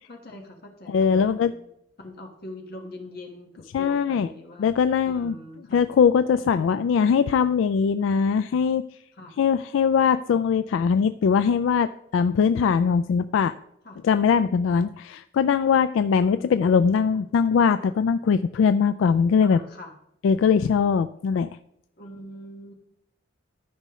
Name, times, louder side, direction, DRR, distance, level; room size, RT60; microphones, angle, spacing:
voice 1, 0.1-1.6 2.0-4.7 5.0-5.8 9.1-9.3 13.8-14.0 14.7-14.9 16.1-17.2 19.4-19.9 22.0-22.7, left 1 dB, 55° left, 2 dB, 1.5 m, -42 dB
voice 2, 0.9-1.5 3.7-4.3 4.6-5.3 5.7-8.8 9.4-13.5 14.0-19.6 20.2-21.5, left 6 dB, 80° left, 12 dB, 0.3 m, -21 dB
13.5 x 5.5 x 3.1 m, 0.75 s
head